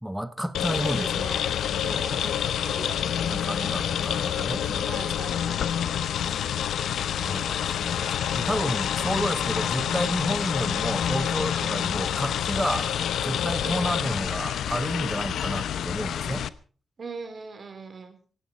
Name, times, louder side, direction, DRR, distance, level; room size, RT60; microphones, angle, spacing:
voice 1, 0.0-1.4 1.9-2.2 3.3-5.1 6.8-12.9 13.2-16.5, equal, 5° right, 1.2 m, -31 dB
sound 1, 0.5-16.5, left 9 dB, 90° left, 0.8 m, -28 dB
voice 2, 0.8-1.4 1.8-2.4 2.6-3.5 4.8-5.7 11.1-11.3 13.6-14.0 17.0-18.2, right 4 dB, 50° right, 3.6 m, -40 dB
18.0 x 17.5 x 4.4 m
cardioid pair, 85°, 0 cm